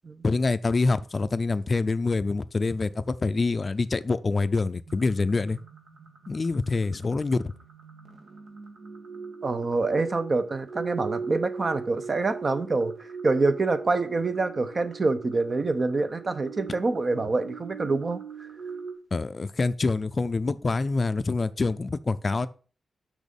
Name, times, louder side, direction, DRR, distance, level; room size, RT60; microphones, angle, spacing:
voice 1, 0.2-5.6 6.3-7.4 19.1-22.5, left 3 dB, 35° left, 0.5 m, -26 dB
sound 1, 4.9-18.9, right 5 dB, 70° right, 1.7 m, -40 dB
voice 2, 9.4-12.9 13.2-18.2, right 3 dB, 40° right, 0.9 m, -26 dB
6.3 x 6.3 x 5.3 m
wide cardioid pair, 105°, 0 cm